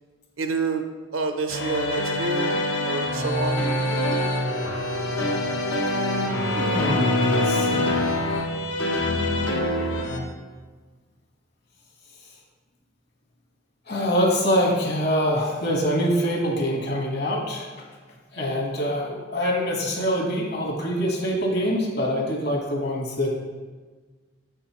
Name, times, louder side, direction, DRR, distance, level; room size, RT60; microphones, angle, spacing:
voice 1, 0.4-0.8 1.1-2.5 2.8-3.7, right 3 dB, 85° right, 6 dB, 0.7 m, -28 dB
sound 1, 1.5-10.2, left 1 dB, 75° left, 1.0 m, -25 dB
voice 2, 6.5-8.3 13.9-17.7 18.3-23.4, equal, 55° left, -1 dB, 1.5 m, -24 dB
7.3 x 6.7 x 3.1 m, 1.4 s
head